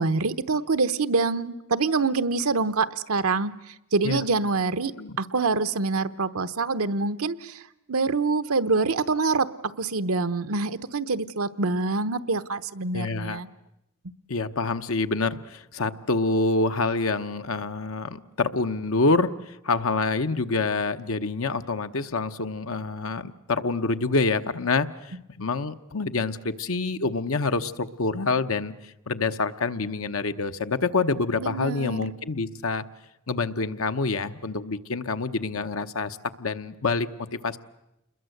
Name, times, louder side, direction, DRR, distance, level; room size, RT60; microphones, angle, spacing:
voice 1, 0.0-3.5 3.9-4.9 5.2-7.6 7.9-9.5 9.8-13.5 31.4-32.0, right 4 dB, 70° right, 12 dB, 0.9 m, -25 dB
voice 2, 12.9-13.4 14.3-32.8 33.3-37.1 37.4-37.6, left 3 dB, 65° left, 9 dB, 1.0 m, -27 dB
28.0 x 21.5 x 7.9 m, 0.84 s
head